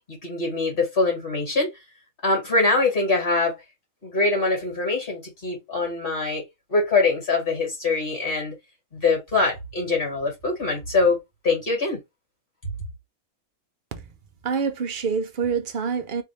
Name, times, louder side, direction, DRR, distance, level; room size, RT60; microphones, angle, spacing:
voice 1, 0.1-1.7 2.2-3.6 4.0-8.5 8.9-12.0, left 3 dB, 45° left, 2.1 m, -23 dB
voice 2, 14.4-16.2, right 6 dB, 50° right, 0.6 m, -26 dB
3.4 x 2.6 x 3.2 m
omnidirectional pair, 1.4 m